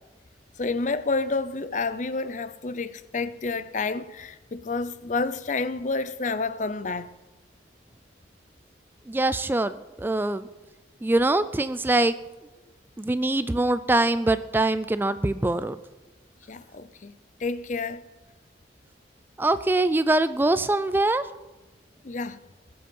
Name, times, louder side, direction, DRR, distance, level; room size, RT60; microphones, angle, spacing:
voice 1, 0.6-7.1 16.5-17.1 17.4-18.0 22.0-22.4, left 3 dB, 45° left, 0.6 m, -29 dB
voice 2, 9.1-10.5 11.0-12.2 13.0-15.8 19.4-21.3, right 2 dB, 10° right, 0.3 m, -23 dB
20.0 x 7.8 x 5.4 m
head